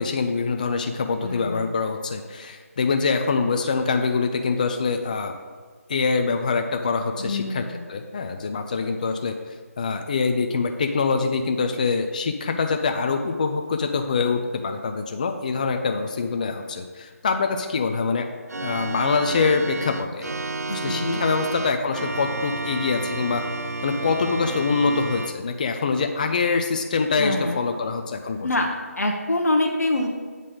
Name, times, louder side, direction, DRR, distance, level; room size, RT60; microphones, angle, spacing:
voice 1, 0.0-5.3 5.9-9.4 9.8-18.3 18.6-20.3 20.7-23.4 23.8-28.5, left 4 dB, 30° left, 5 dB, 0.4 m, -24 dB
voice 2, 1.2-1.7 7.2-7.8 20.7-21.2 27.2-27.6 28.4-28.7 29.0-30.1, left 2 dB, 85° left, 1 dB, 0.9 m, -25 dB
Organ, 18.5-25.3, right 2 dB, 85° right, 0.5 m, -31 dB
7.8 x 4.0 x 4.9 m, 1.5 s
figure-of-eight pair, 160°, 8 cm